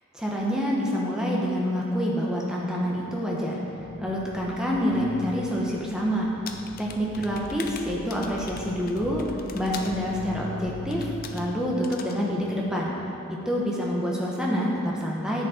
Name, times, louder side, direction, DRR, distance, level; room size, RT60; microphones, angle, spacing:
voice 1, 0.1-3.6 4.0-6.3 6.8-12.9 13.4-15.5, equal, 5° right, -4 dB, 1.3 m, -27 dB
sound 1, 3.8-11.4, left 1 dB, 80° left, 1.1 m, -41 dB
sound 2, 6.5-10.0 10.9-11.5 11.8-12.2, left 6 dB, 45° left, 0.6 m, -42 dB
10.0 x 8.2 x 4.5 m, 2.9 s
head